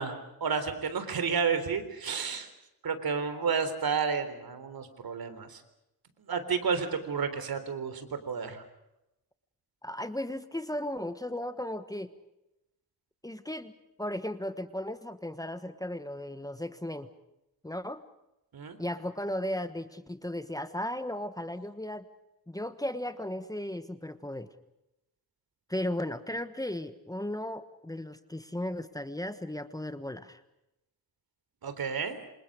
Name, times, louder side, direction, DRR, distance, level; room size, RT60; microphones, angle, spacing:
voice 1, 0.0-2.5 2.8-5.6 6.3-8.6 18.5-18.8 31.6-32.2, right 5 dB, 70° right, 10 dB, 3.8 m, -31 dB
voice 2, 9.8-12.1 13.2-13.7 14.0-17.1 17.6-18.0 18.8-22.1 22.5-24.5 25.7-30.4, left 1 dB, 10° left, 11 dB, 1.3 m, -35 dB
27.5 x 27.0 x 5.1 m, 0.89 s
wide cardioid pair, 115°, 37 cm